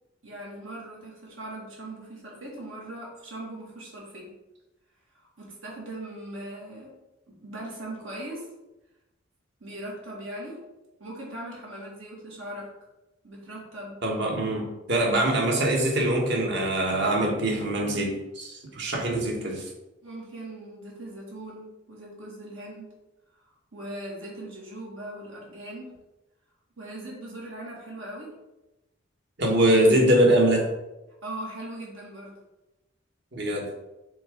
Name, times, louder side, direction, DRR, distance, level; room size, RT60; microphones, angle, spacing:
voice 1, 0.2-4.3 5.4-6.9 7.4-8.4 9.6-10.6 11.0-12.7 13.2-14.0 20.0-22.9 23.7-25.9 26.8-28.3 31.2-32.3, right 1 dB, 85° right, -3 dB, 2.2 m, -39 dB
voice 2, 14.0-19.7 29.4-30.7 33.3-33.7, right 1 dB, 60° right, 0 dB, 1.4 m, -23 dB
6.8 x 3.7 x 3.8 m, 0.99 s
head